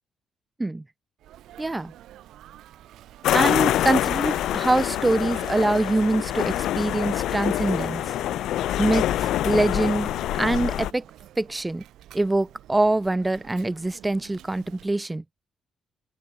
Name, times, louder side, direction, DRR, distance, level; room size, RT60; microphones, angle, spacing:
Sneeze, 1.2-15.0, right 13 dB, 80° right, 6.0 m, -49 dB
voice 1, 1.6-1.9 3.3-8.0 8.8-10.1 10.4-11.0 11.4-11.8 12.1-15.2, right 2 dB, 15° right, 2.9 m, -24 dB
sound 1, 3.2-10.9, left 13 dB, 80° left, 2.8 m, -25 dB
open air
cardioid pair, 90°, 0 cm